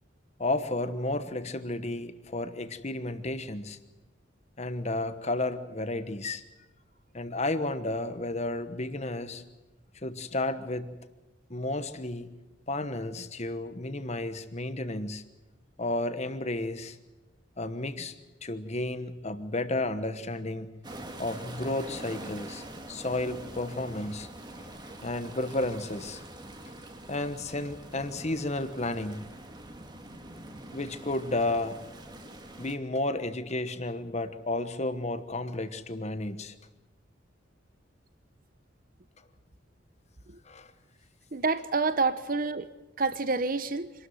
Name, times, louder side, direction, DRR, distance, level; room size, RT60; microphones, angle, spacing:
voice 1, 0.4-3.8 4.6-6.4 7.1-9.4 9.9-10.9 11.5-12.3 12.7-15.2 15.8-17.0 17.6-18.1 18.4-20.7 21.2-24.3 25.0-26.2 27.1-29.2 30.7-31.7 32.6-36.6 40.4-40.7, left 2 dB, 35° left, 1.2 m, -32 dB
sound 1, 20.8-32.8, right 1 dB, 20° right, 1.6 m, -44 dB
voice 2, 41.3-42.7 43.0-43.9, right 4 dB, 45° right, 1.0 m, -28 dB
25.5 x 13.0 x 9.2 m
head